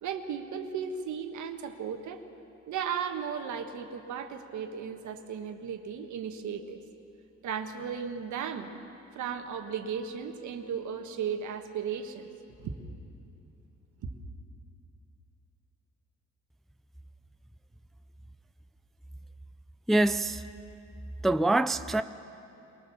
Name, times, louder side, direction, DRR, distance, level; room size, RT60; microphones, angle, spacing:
voice 1, 0.0-2.2 2.7-6.8 7.4-8.7 9.1-12.3 12.6-12.8 14.0-14.1, right 7 dB, 75° right, 1.5 m, -35 dB
voice 2, 19.9-20.4 21.2-22.0, right 2 dB, ahead, 0.4 m, -24 dB
22.5 x 18.5 x 7.1 m
cardioid pair, 90°, 30 cm